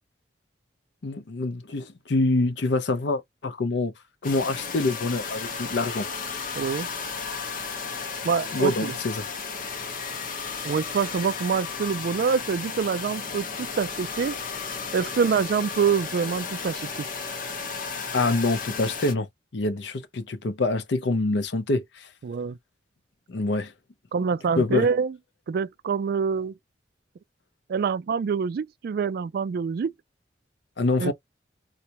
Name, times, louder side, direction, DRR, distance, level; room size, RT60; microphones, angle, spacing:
voice 1, 1.0-3.9 4.2-6.1 8.5-9.2 18.1-19.3 19.5-22.1 23.3-23.7 24.6-24.9 30.8-31.1, left 2 dB, 70° left, 0.6 m, -25 dB
sound 1, 4.2-19.1, left 5 dB, 50° left, 1.0 m, -34 dB
voice 2, 6.6-6.9 8.2-9.0 10.6-14.4 14.9-17.1 22.2-22.6 24.1-25.2 25.5-26.5 27.7-29.9 31.0-31.1, right 6 dB, 60° right, 0.3 m, -26 dB
4.0 x 2.1 x 2.8 m
head